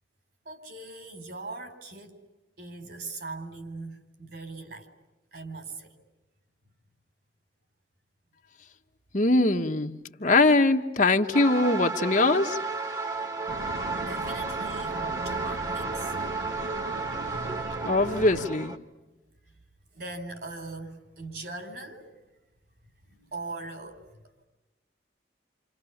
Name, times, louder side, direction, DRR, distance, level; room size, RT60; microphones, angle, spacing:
voice 1, 0.4-2.2 2.6-4.9 5.3-5.9 14.0-16.1 19.9-22.1 23.3-24.0, right 3 dB, 55° right, 4.3 m, -40 dB
voice 2, 9.1-12.6 17.8-18.7, left 2 dB, 40° left, 1.3 m, -22 dB
sound 1, 11.3-18.8, right 3 dB, 20° right, 1.6 m, -33 dB
sound 2, 13.5-18.5, right 2 dB, 80° right, 1.3 m, -38 dB
29.5 x 27.5 x 7.2 m
head